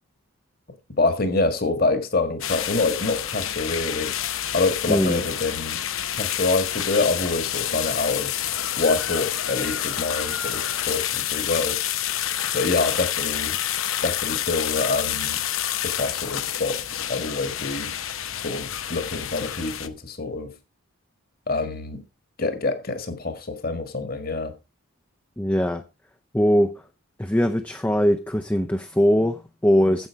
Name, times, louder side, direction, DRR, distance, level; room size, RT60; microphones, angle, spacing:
voice 1, 1.0-4.1 4.5-5.8 6.2-8.3 8.8-11.8 12.5-13.6 14.0-15.4 15.8-17.9 18.3-20.5 21.5-22.0 22.4-24.5, left 3 dB, 45° left, 1.6 m, -26 dB
sound 1, 2.4-19.9, left 11 dB, 70° left, 0.8 m, -28 dB
voice 2, 4.9-5.2 25.4-25.8 26.3-26.7 27.2-30.1, equal, 10° left, 0.6 m, -21 dB
9.7 x 7.9 x 4.6 m
head